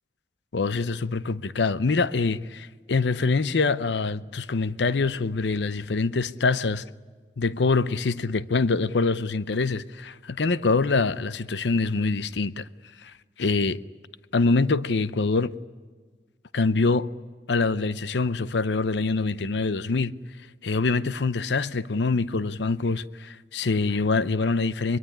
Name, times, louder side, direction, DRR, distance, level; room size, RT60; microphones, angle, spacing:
voice 1, 0.5-6.8 7.4-12.7 13.0-13.1 13.4-13.8 14.3-15.5 16.5-17.1 17.5-20.2 20.6-25.0, left 3 dB, 80° left, 0.7 m, -25 dB
24.0 x 22.5 x 9.9 m
head